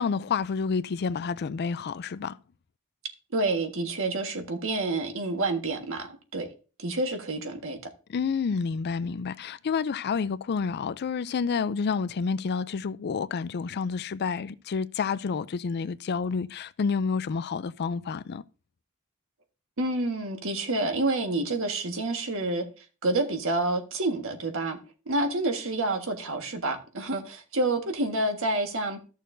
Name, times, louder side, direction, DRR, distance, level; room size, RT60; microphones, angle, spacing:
voice 1, 0.0-2.4 8.1-18.4, left 5 dB, 50° left, 0.4 m, -29 dB
voice 2, 3.3-6.5 6.8-7.8 19.8-22.6 23.0-24.8 25.1-29.0, right 2 dB, 65° right, 1.5 m, -28 dB
14.0 x 6.5 x 2.6 m
head